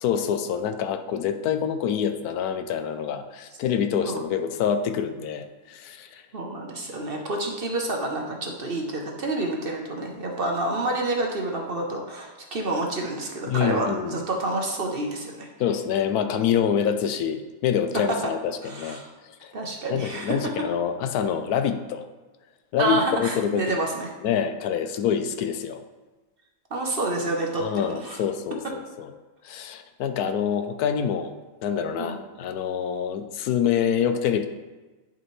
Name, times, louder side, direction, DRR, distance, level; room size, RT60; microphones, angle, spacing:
voice 1, 0.0-6.2 13.5-14.2 15.6-19.0 19.4-19.5 19.9-22.1 22.7-23.6 24.2-25.8 27.6-29.1 29.4-31.3 31.6-34.5, left 8 dB, 85° left, 8 dB, 1.1 m, -26 dB
voice 2, 6.3-15.5 18.6-19.1 19.5-20.4 22.8-24.1 26.7-28.2 32.0-32.2, right 2 dB, 45° right, 1 dB, 0.9 m, -28 dB
10.5 x 5.1 x 3.2 m, 1.2 s
omnidirectional pair, 1.6 m